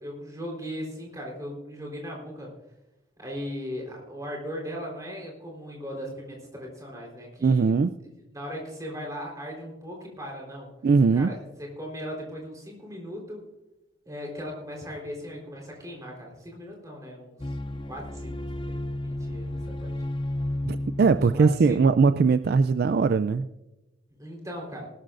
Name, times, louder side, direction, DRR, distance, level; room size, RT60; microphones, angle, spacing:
voice 1, 0.0-2.5 3.2-7.8 8.3-10.7 11.1-11.4 11.8-13.4 14.1-17.6 17.9-19.9 21.3-21.8 24.2-24.9, equal, 15° right, -1 dB, 3.9 m, -38 dB
voice 2, 7.4-7.9 10.8-11.3 20.7-23.5, right 4 dB, 50° right, 12 dB, 0.3 m, -20 dB
sound 1, 17.4-22.7, left 1 dB, 25° left, 0.5 m, -33 dB
20.0 x 13.0 x 2.5 m, 0.98 s
head